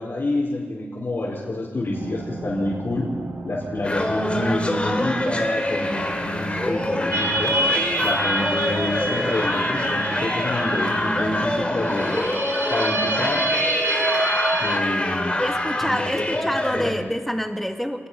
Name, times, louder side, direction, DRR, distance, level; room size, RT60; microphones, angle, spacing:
voice 1, 0.0-3.1 3.4-7.5 8.0-12.2 12.7-13.5 14.5-15.4 15.8-16.4 16.8-17.0, left 2 dB, 60° left, -5 dB, 5.0 m, -28 dB
sound 1, 1.9-11.9, right 3 dB, 80° right, 3.6 m, -36 dB
sound 2, 3.8-16.9, left 1 dB, 25° left, 3.0 m, -25 dB
sound 3, 7.1-14.8, right 2 dB, 60° right, 1.8 m, -27 dB
voice 2, 15.4-18.1, equal, 5° left, 5 dB, 2.0 m, -27 dB
26.5 x 20.5 x 5.8 m, 1.5 s
wide cardioid pair, 90°, 5 cm